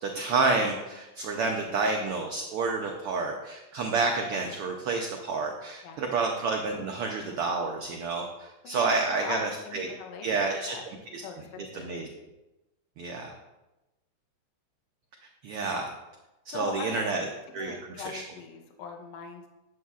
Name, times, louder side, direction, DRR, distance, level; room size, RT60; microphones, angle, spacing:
voice 1, 0.0-9.9 10.2-10.8 11.1-11.2 11.7-12.1 13.0-13.3 15.4-15.9 16.5-17.3 17.5-18.2, right 3 dB, 85° right, 2 dB, 1.2 m, -29 dB
voice 2, 8.6-8.9 9.2-9.4 9.6-10.9 11.2-11.9 16.5-17.1 17.6-19.5, left 6 dB, 70° left, 3 dB, 1.9 m, -40 dB
11.0 x 8.2 x 2.4 m, 1.0 s
omnidirectional pair, 3.5 m